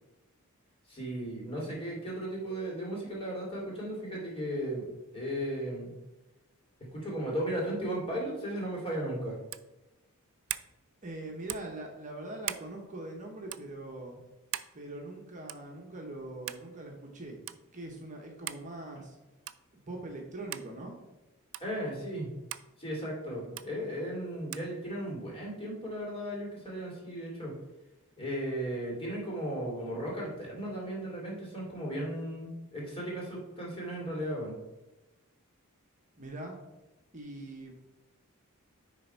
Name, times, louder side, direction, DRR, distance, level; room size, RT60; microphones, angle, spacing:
voice 1, 0.9-4.9 5.1-5.9 6.8-9.4 21.6-22.3 22.8-27.6 28.2-34.5, right 1 dB, 25° left, -4 dB, 2.5 m, -36 dB
sound 1, 9.5-9.7 10.5-10.7 11.5-11.7 12.4-12.7 13.5-13.6 14.5-14.7 15.5-15.7 16.5-16.7 17.5-17.6 18.5-18.7 19.4-19.7 20.5-20.7 21.5-21.7 22.5-22.7 23.6-23.7 24.5-24.7, right 14 dB, 60° right, 0.4 m, -39 dB
voice 2, 11.0-14.2 14.7-17.4 17.7-19.2 19.9-21.0 36.2-36.6 37.1-37.7, right 2 dB, 35° right, 1 dB, 1.0 m, -42 dB
9.7 x 3.5 x 4.5 m, 1.0 s
head